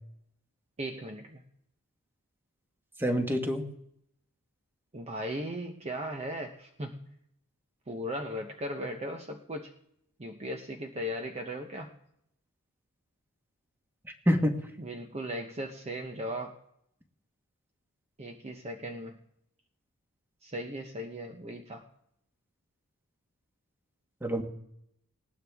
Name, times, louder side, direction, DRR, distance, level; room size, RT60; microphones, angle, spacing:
voice 1, 0.8-1.4 4.9-7.1 7.9-9.7 10.2-11.9 14.8-16.6 18.2-19.2 20.4-21.9, equal, 30° right, 3 dB, 0.9 m, -37 dB
voice 2, 3.0-3.6 14.3-14.6 24.2-24.4, equal, 10° right, 5 dB, 1.4 m, -26 dB
19.0 x 17.5 x 3.5 m, 0.76 s
head